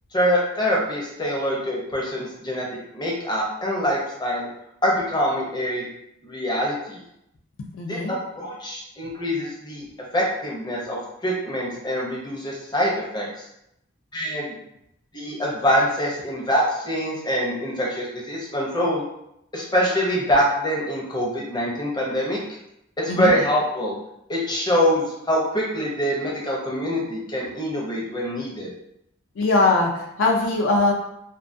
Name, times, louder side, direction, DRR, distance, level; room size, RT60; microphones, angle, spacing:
voice 1, 0.1-2.7 2.9-4.5 4.8-5.9 6.2-7.0 7.9-9.9 10.1-11.0 11.2-13.4 14.1-14.5 15.1-19.0 19.5-22.4 23.0-24.0 24.3-28.7, equal, 20° left, -3 dB, 0.5 m, -24 dB
voice 2, 7.6-8.1 23.1-23.3 29.4-30.9, left 3 dB, 70° left, 0 dB, 0.4 m, -21 dB
2.3 x 2.2 x 2.5 m, 0.80 s
head